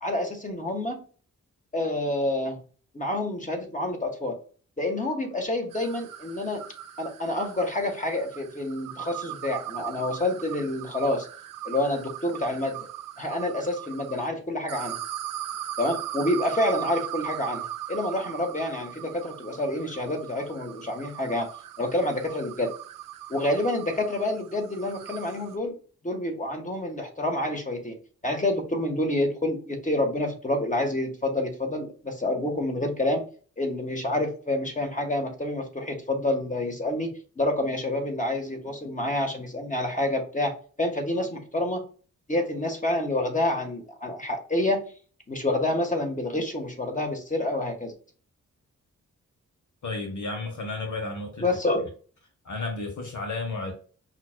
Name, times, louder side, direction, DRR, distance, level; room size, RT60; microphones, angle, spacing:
voice 1, 0.0-1.0 1.7-2.6 2.9-4.4 4.8-6.6 7.0-11.3 11.6-12.8 13.2-15.0 15.8-21.5 21.8-22.7 23.3-25.7 26.0-28.0 28.2-33.2 33.6-41.8 42.3-44.8 45.3-47.9 51.4-51.8, left 1 dB, 25° left, 2 dB, 1.3 m, -28 dB
sound 1, 5.7-14.3 14.7-25.6, right 12 dB, 80° right, 0.5 m, -39 dB
voice 2, 49.8-51.4 52.4-53.7, left 3 dB, 60° left, 3 dB, 1.0 m, -32 dB
5.7 x 2.4 x 2.2 m, 0.40 s
supercardioid pair, 45°, 33 cm